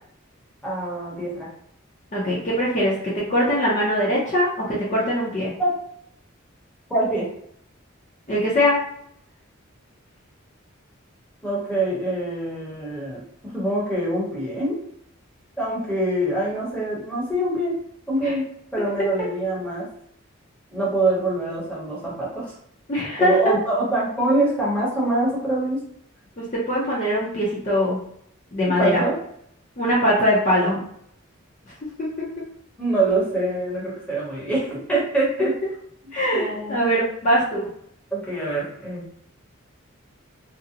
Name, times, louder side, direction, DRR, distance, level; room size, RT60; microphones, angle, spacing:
voice 1, 0.6-1.5 5.6-5.7 6.9-7.3 11.4-13.2 13.5-14.8 15.6-17.8 18.1-19.9 20.7-22.5 23.2-25.8 28.6-29.2 32.8-35.5 36.3-36.8 38.1-39.0, right 2 dB, 5° left, -7 dB, 0.8 m, -24 dB
voice 2, 2.1-5.5 8.3-8.8 18.2-18.3 18.8-18.9 22.9-23.5 26.4-28.0 28.5-29.0 29.8-30.8 32.4-32.5 36.1-37.7, equal, 35° left, -6 dB, 0.5 m, -22 dB
2.5 x 2.0 x 2.7 m, 0.69 s
head